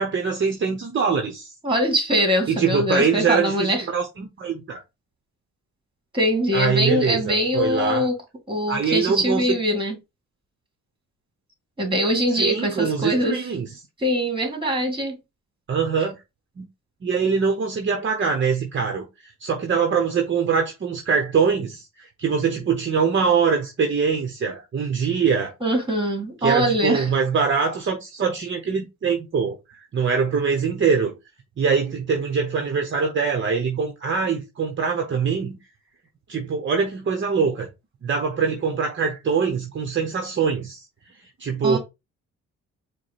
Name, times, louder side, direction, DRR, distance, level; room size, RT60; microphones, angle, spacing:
voice 1, 0.0-1.5 2.5-4.8 6.5-8.1 8.7-9.6 12.4-13.7 15.7-16.2 16.6-16.7 17.0-19.1 19.4-25.5 26.4-29.6 29.9-31.1 31.6-35.6 36.3-37.7 38.0-40.8 41.4-41.8, right 5 dB, 40° right, 0.9 m, -23 dB
voice 2, 1.6-3.9 6.1-8.1 8.5-10.0 11.8-13.4 14.0-15.1 25.6-27.1 41.6-41.8, equal, 15° right, 2.0 m, -22 dB
4.8 x 2.2 x 4.2 m
cardioid pair, 90°, 30 cm